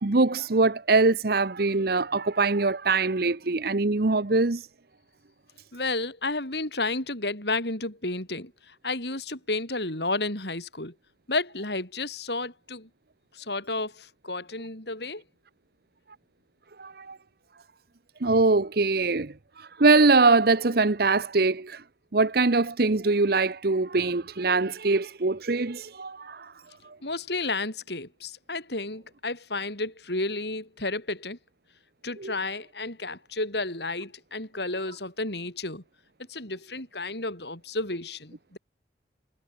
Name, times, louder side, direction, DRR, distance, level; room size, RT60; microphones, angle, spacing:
voice 1, 0.0-4.7 16.8-17.2 18.2-21.8 22.1-26.5 26.8-27.0 32.2-32.4, right 3 dB, 60° right, 0.9 m, -23 dB
voice 2, 5.7-10.9 11.3-12.9 13.3-15.2 27.0-31.4 32.0-35.8 36.3-38.6, left 2 dB, 65° left, 7.2 m, -32 dB
head